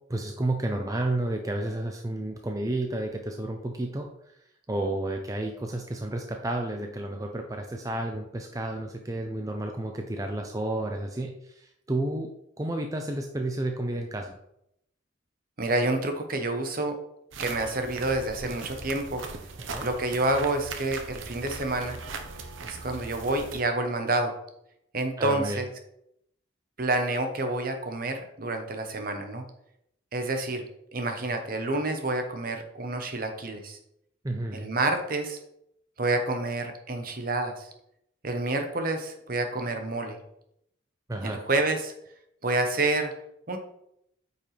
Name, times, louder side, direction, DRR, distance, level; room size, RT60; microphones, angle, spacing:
voice 1, 0.1-4.1 4.7-12.3 12.6-14.4 19.7-19.9 25.2-25.6 34.2-34.6 41.1-41.4, right 1 dB, 20° right, 3 dB, 0.5 m, -31 dB
voice 2, 15.6-17.0 17.4-19.2 19.8-22.0 22.6-24.3 24.9-25.7 26.8-29.4 30.1-30.6 30.9-33.8 34.5-35.4 36.0-37.7 38.2-40.2 41.2-41.9 42.4-43.1 43.5-43.6, right 2 dB, 45° right, 6 dB, 1.0 m, -28 dB
sound 1, 17.3-23.6, right 4 dB, 85° right, 0.9 m, -39 dB
8.8 x 5.4 x 3.3 m, 0.78 s
head